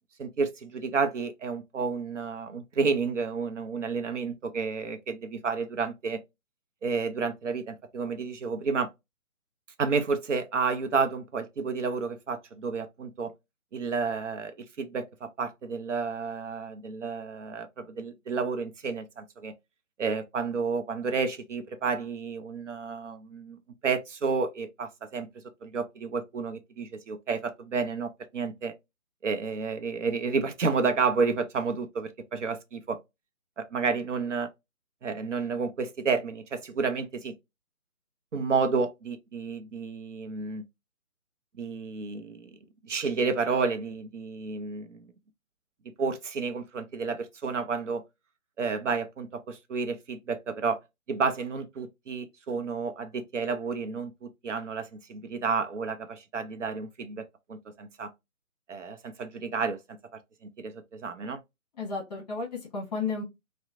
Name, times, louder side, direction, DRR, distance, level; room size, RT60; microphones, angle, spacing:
voice 1, 0.2-6.2 6.8-8.9 9.8-13.3 13.7-19.5 20.0-23.6 23.8-25.3 25.6-28.7 29.2-33.0 33.6-34.5 35.0-37.3 38.3-40.6 41.6-42.5 42.8-45.1 46.0-48.0 48.6-50.8 51.1-58.1 58.7-59.8 60.6-61.4, right 5 dB, 60° right, 0.5 m, -31 dB
voice 2, 61.8-63.2, left 4 dB, 30° left, 1.0 m, -33 dB
2.7 x 2.0 x 2.3 m
figure-of-eight pair, 145°, 42 cm